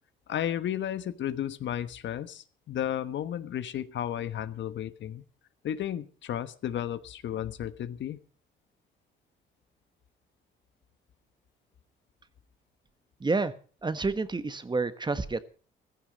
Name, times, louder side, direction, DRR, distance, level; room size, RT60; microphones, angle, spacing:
voice 1, 0.3-5.2 5.6-8.2, left 10 dB, 65° left, 13 dB, 1.2 m, -33 dB
voice 2, 13.2-13.5 13.8-15.4, right 3 dB, 20° right, 13 dB, 1.3 m, -29 dB
15.5 x 14.5 x 5.3 m, 0.39 s
cardioid pair, 90°, 20 cm